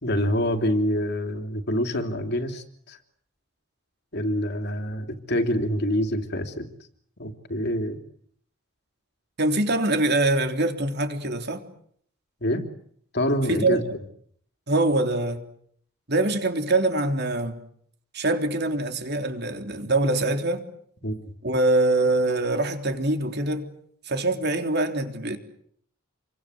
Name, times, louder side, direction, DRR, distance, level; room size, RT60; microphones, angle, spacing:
voice 1, 0.0-3.0 4.1-6.7 7.2-8.0 12.4-12.6 13.1-13.8 21.0-21.3, equal, 55° left, 3.2 m, -26 dB
voice 2, 9.4-11.6 13.5-14.0 14.7-15.4 16.1-17.6 18.1-20.6 21.4-23.7 24.1-25.4, right 2 dB, 50° right, 3.5 m, -24 dB
29.0 x 24.0 x 8.1 m
head